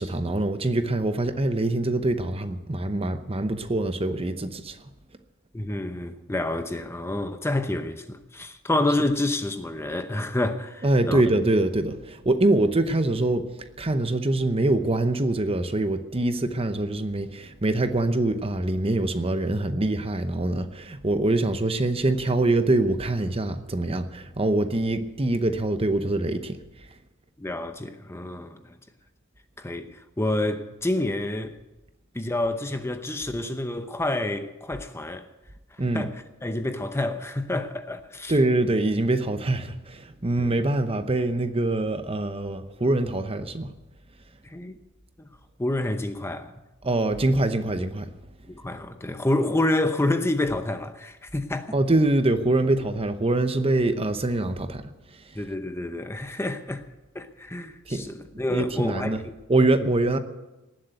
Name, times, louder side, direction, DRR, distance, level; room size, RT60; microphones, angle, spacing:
voice 1, 0.0-4.8 10.8-26.9 35.8-36.1 38.3-43.7 46.8-48.1 51.7-55.4 57.9-58.1 58.5-59.2 59.5-60.2, right 2 dB, 30° right, 0.9 m, -24 dB
voice 2, 5.5-11.2 27.4-28.8 29.6-31.6 32.1-35.3 35.7-36.1 36.4-38.3 40.4-40.5 44.4-44.8 45.2-45.3 45.6-46.5 48.5-51.8 55.3-56.9 57.1-59.3, left 1 dB, 15° left, 0.8 m, -28 dB
18.5 x 7.7 x 9.1 m
head